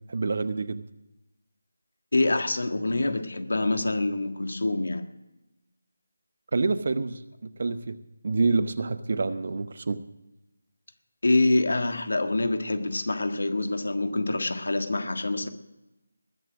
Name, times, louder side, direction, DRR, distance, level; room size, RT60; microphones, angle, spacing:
voice 1, 0.1-0.8 6.5-8.0 8.2-10.0, right 3 dB, 50° right, 14 dB, 0.9 m, -27 dB
voice 2, 2.1-5.0 11.2-15.5, left 2 dB, 70° left, 8 dB, 1.6 m, -26 dB
21.0 x 7.7 x 6.1 m, 0.96 s
figure-of-eight pair, 160°, 0 cm